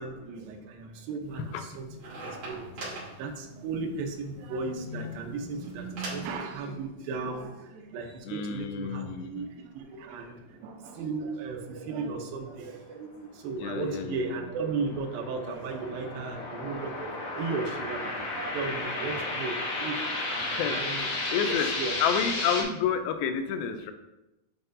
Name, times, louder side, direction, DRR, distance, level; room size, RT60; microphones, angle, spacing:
voice 1, 0.0-22.0, right 4 dB, 80° right, 3 dB, 2.5 m, -36 dB
sound 1, 1.2-6.3, right 1 dB, 50° right, 2.9 m, -41 dB
voice 2, 8.3-9.5 13.6-14.4 20.4-20.8 21.3-21.7 22.0-23.9, left 7 dB, 90° left, 8 dB, 2.5 m, -30 dB
sound 2, 14.2-22.6, left 2 dB, 65° left, 1.8 m, -33 dB
8.7 x 4.4 x 2.6 m, 0.95 s
omnidirectional pair, 4.2 m